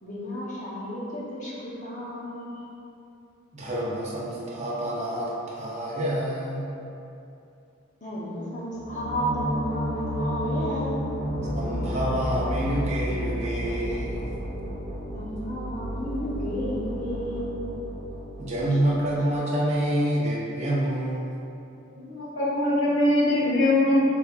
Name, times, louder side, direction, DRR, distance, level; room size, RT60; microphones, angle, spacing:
voice 1, 0.0-2.6 8.0-11.2 15.1-17.7, equal, 40° left, -6 dB, 0.9 m, -32 dB
voice 2, 3.5-6.7 11.5-14.3 18.4-21.2, right 1 dB, 35° right, -5 dB, 0.7 m, -27 dB
sound 1, 8.7-19.4, equal, 80° right, 1.1 m, -31 dB
voice 3, 22.0-24.0, left 1 dB, 80° left, -6 dB, 1.1 m, -22 dB
6.0 x 3.4 x 2.4 m, 2.7 s
head